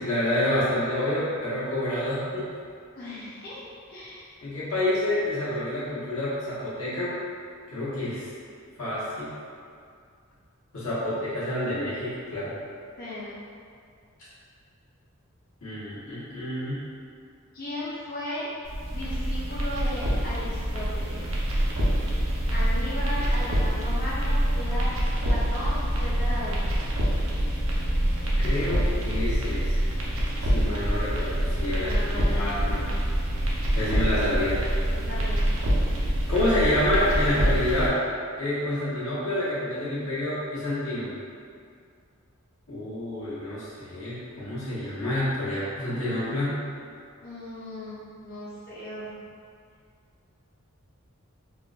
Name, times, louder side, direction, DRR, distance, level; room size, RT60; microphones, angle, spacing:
voice 1, 0.0-2.5 4.4-7.2 7.7-8.3 8.8-9.3 10.7-12.6 14.2-14.3 15.6-16.8 28.4-29.7 30.4-32.9 33.7-34.6 36.0-38.0 38.4-41.2 42.7-46.6, left 1 dB, 80° left, -10 dB, 1.1 m, -28 dB
voice 2, 3.0-4.3 13.0-13.4 17.5-18.5 18.9-21.2 22.5-24.9 25.2-26.8 31.8-32.9 34.9-35.5 47.2-49.1, left 1 dB, 45° left, -11 dB, 0.6 m, -36 dB
sound 1, 18.6-37.9, equal, 75° right, 0.6 m, -26 dB
3.6 x 2.6 x 2.4 m, 2.3 s
head